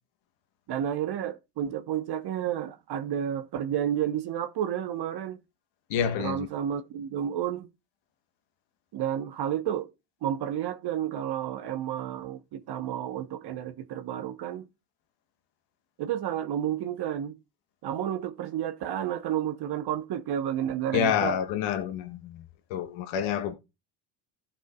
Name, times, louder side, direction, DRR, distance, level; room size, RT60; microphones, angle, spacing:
voice 1, 0.7-5.4 6.2-7.7 8.9-9.9 10.2-14.7 16.0-17.4 17.8-21.4, right 10 dB, 55° right, 1.1 m, -31 dB
voice 2, 5.9-6.5 20.9-22.4 22.7-23.5, left 8 dB, 75° left, 1.3 m, -28 dB
15.0 x 5.6 x 2.3 m
hypercardioid pair, 70°, 46 cm